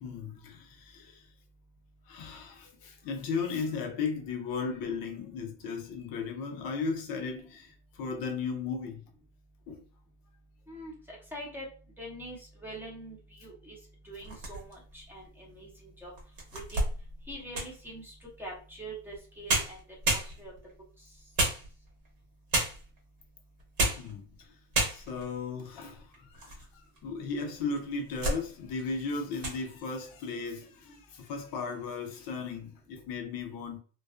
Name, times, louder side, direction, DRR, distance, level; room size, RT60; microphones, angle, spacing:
voice 1, 0.0-1.3 2.1-9.0 9.7-9.8 24.0-24.5 24.9-33.8, left 4 dB, 55° left, 0.6 m, -36 dB
voice 2, 11.3-11.7 12.0-13.8 14.0-16.1 16.7-16.8 17.3-19.8 20.1-20.5, right 1 dB, 5° right, 0.7 m, -44 dB
sound 1, 14.2-14.9 15.5-15.6 16.2-17.8 19.1-19.2 19.5-20.7 21.4-22.1 22.5-23.0 23.6-24.1 24.4-24.5 24.7-25.3 25.9-26.6 27.0-27.1 27.7-28.4 28.8-29.0 29.3-29.6, right 2 dB, 55° right, 1.0 m, -31 dB
2.4 x 2.2 x 2.3 m
cardioid pair, 140°, 42 cm